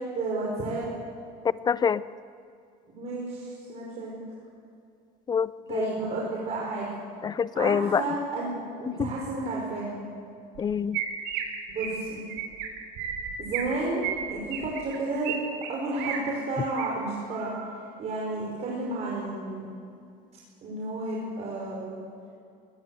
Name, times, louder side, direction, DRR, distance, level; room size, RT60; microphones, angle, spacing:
voice 1, 0.1-0.9 2.9-4.1 5.7-6.9 7.5-10.1 11.7-12.2 13.4-15.3 15.7-17.5 18.0-19.7 20.6-22.0, right 2 dB, 40° right, -4 dB, 5.5 m, -32 dB
voice 2, 1.7-2.0 5.3-5.9 7.2-8.0 9.0-9.1 10.6-11.0, left 7 dB, 25° left, 17 dB, 0.5 m, -26 dB
Chirp tweet, 10.5-10.6 10.9-11.4 11.7-12.0 12.3-12.7 13.0-13.7 14.0-15.4 15.6-16.2 16.6-16.9 17.3-17.7, right 9 dB, 75° right, 5.5 m, -33 dB
24.0 x 20.5 x 8.1 m, 2.4 s
cardioid pair, 145°, 17 cm